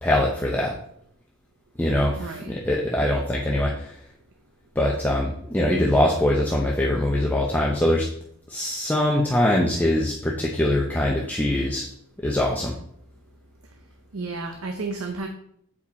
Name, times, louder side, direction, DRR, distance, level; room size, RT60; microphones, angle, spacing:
voice 1, 0.0-0.7 1.8-3.9 4.8-8.1 8.5-11.8 12.2-12.7, left 1 dB, 10° left, -2 dB, 0.7 m, -23 dB
voice 2, 2.2-2.5 14.1-15.3, right 3 dB, 65° right, 5 dB, 0.7 m, -32 dB
8.6 x 4.9 x 4.1 m, 0.69 s
head